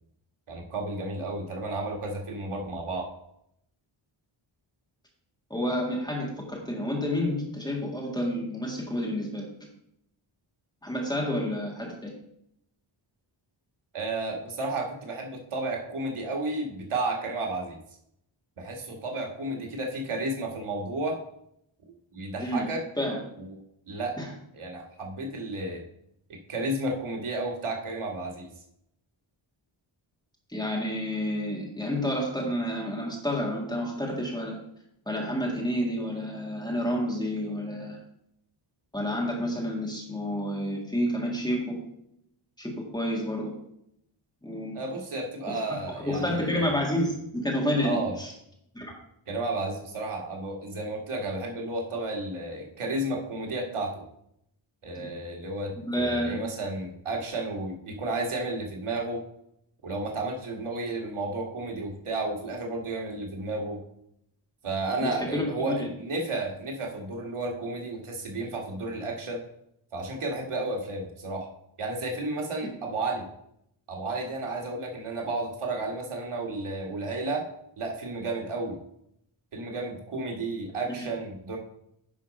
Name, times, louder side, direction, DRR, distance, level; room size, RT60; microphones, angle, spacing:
voice 1, 0.5-3.1 13.9-17.8 18.6-21.2 21.9-22.8 23.4-23.6 23.9-24.1 24.5-25.8 26.3-28.5 44.7-46.7 47.8-48.2 49.3-54.1 54.8-59.2 59.8-63.8 64.6-69.4 69.9-71.5 71.8-73.3 73.9-77.5 77.8-78.8 79.5-81.6, right 2 dB, 85° right, 0 dB, 1.8 m, -32 dB
voice 2, 5.5-9.4 10.8-12.1 22.4-22.7 23.0-23.2 24.2-24.3 30.5-34.6 35.1-38.0 38.9-41.8 42.6-43.6 44.4-44.8 45.5-45.6 46.1-48.3 48.7-48.9 54.9-55.1 55.8-56.4 65.0-65.9 72.6-72.7, left 1 dB, 10° left, -2 dB, 1.9 m, -29 dB
10.0 x 4.2 x 5.2 m, 0.76 s
wide cardioid pair, 180°, 49 cm